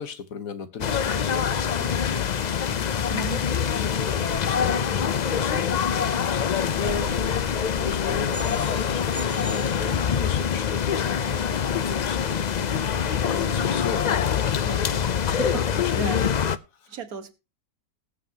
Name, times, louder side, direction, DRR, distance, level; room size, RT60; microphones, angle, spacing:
voice 1, 0.0-3.1 3.8-7.5 7.7-9.2 10.2-14.1 15.2-16.1, left 6 dB, 65° left, 1.5 m, -38 dB
sound 1, 0.8-16.6, left 7 dB, 85° left, 0.3 m, -25 dB
voice 2, 3.1-3.5 9.8-10.2 14.6-16.3 16.9-17.3, right 6 dB, 70° right, 1.7 m, -37 dB
sound 2, 6.8-8.9, left 1 dB, 5° left, 1.8 m, -38 dB
sound 3, 8.3-10.5, right 3 dB, 15° right, 0.7 m, -41 dB
20.0 x 7.2 x 2.8 m
omnidirectional pair, 1.6 m